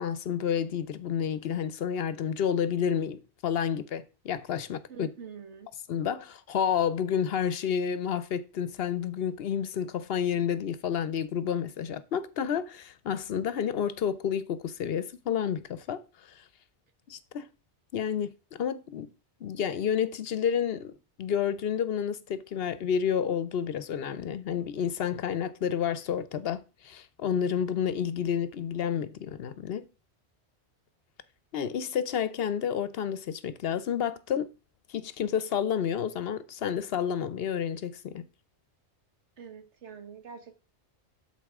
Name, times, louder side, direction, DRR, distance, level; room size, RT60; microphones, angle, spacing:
voice 1, 0.0-5.1 5.9-16.0 17.1-17.5 17.9-19.1 19.4-20.9 21.2-29.9 31.5-34.5 34.9-38.2, left 8 dB, 65° left, 0.8 m, -30 dB
voice 2, 4.9-5.7 39.4-40.5, right 6 dB, 85° right, 1.5 m, -45 dB
12.0 x 4.2 x 3.5 m
omnidirectional pair, 1.2 m